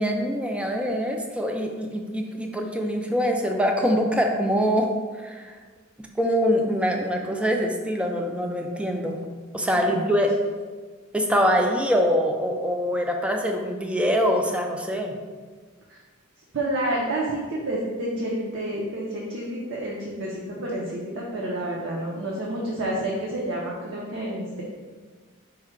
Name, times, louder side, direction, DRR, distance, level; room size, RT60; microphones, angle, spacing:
voice 1, 0.0-4.9 5.2-5.6 6.2-9.2 9.5-10.4 11.1-15.2, equal, 5° right, 2 dB, 0.3 m, -24 dB
voice 2, 9.7-10.1 15.9-16.0 16.5-24.6, right 1 dB, 65° right, -4 dB, 0.6 m, -29 dB
4.7 x 2.2 x 4.5 m, 1.5 s
head